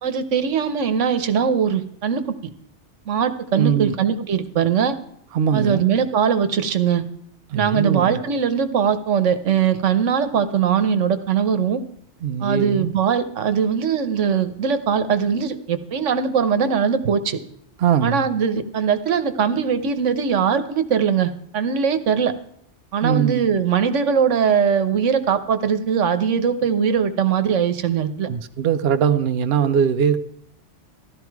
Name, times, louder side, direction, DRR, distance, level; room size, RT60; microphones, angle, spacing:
voice 1, 0.0-2.2 3.1-5.0 5.5-7.0 7.5-11.8 12.4-17.4 18.0-22.3 22.9-28.3, right 7 dB, 90° right, 1.3 m, -21 dB
voice 2, 3.5-3.9 5.3-5.8 7.5-8.2 12.2-12.9 17.8-18.3 23.0-23.5 28.3-30.2, right 8 dB, 65° right, 0.8 m, -21 dB
14.0 x 12.0 x 4.6 m
omnidirectional pair, 1.2 m